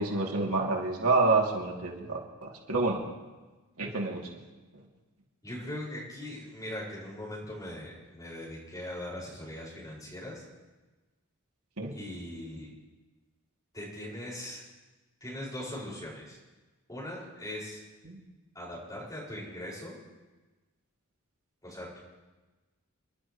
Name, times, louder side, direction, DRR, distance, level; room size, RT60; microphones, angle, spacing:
voice 1, 0.0-3.1 3.8-4.2 11.8-11.9 18.0-18.2, right 3 dB, 85° right, -2 dB, 2.8 m, -28 dB
voice 2, 5.4-10.4 11.9-12.7 13.7-14.6 15.2-16.4 16.9-17.8 18.5-20.0 21.6-22.0, left 1 dB, 15° left, -6 dB, 5.7 m, -40 dB
29.5 x 11.5 x 3.2 m, 1.2 s
head